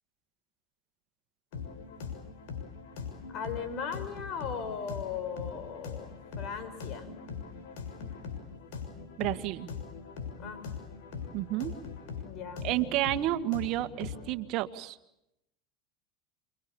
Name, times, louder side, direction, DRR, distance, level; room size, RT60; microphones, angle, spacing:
sound 1, 1.5-14.3, left 6 dB, 75° left, 6.9 m, -41 dB
voice 1, 3.3-7.1 10.4-10.6 12.2-13.0, left 6 dB, 50° left, 11 dB, 5.7 m, -38 dB
voice 2, 9.2-9.7 11.3-11.7 12.6-15.0, right 15 dB, 55° right, 9 dB, 1.7 m, -30 dB
28.5 x 25.0 x 7.1 m, 0.83 s
hypercardioid pair, 95°, 0 cm